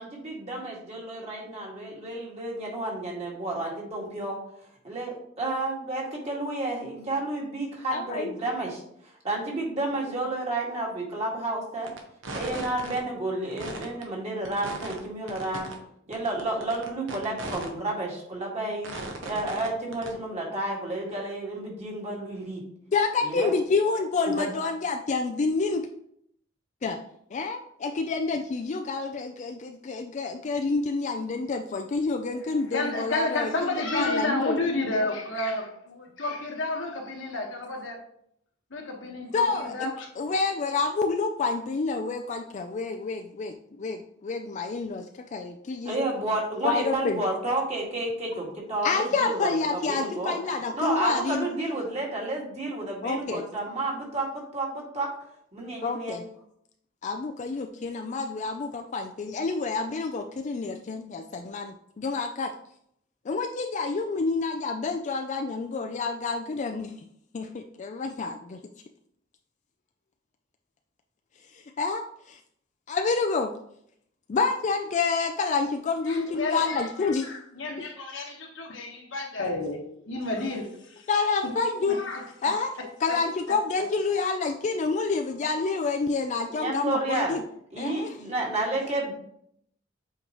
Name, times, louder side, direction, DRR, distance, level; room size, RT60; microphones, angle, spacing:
voice 1, 0.0-4.4 4.8-8.8 9.2-11.9 12.3-15.7 16.1-18.9 19.2-22.6 23.2-23.5 24.3-24.5 45.8-50.3 50.7-55.1 55.5-56.3 86.5-87.3 87.7-89.1, right 2 dB, 35° right, -2 dB, 2.0 m, -31 dB
voice 2, 7.9-8.3 22.9-25.9 26.8-27.0 27.3-33.5 33.9-34.5 39.3-39.9 40.2-46.0 46.6-47.2 48.8-51.5 53.0-53.5 55.8-56.2 57.0-62.5 63.3-66.9 67.3-68.6 71.5-72.4 72.9-73.6 74.3-77.3 81.1-82.0 82.4-82.7 83.0-87.4 87.8-88.1, left 4 dB, 40° left, 5 dB, 0.4 m, -28 dB
sound 1, 11.8-12.0 12.2-13.0 13.4-14.0 14.4-15.0 15.3-15.7 16.1-17.7 18.1-18.2 18.8-19.7 19.9-20.1, right 2 dB, 85° right, 1.1 m, -37 dB
voice 3, 32.3-38.0 38.7-40.1 76.1-81.1 81.4-81.5 81.9-82.3 83.1-83.2, left 2 dB, 70° left, 1 dB, 1.3 m, -31 dB
7.9 x 4.5 x 3.0 m, 0.70 s
head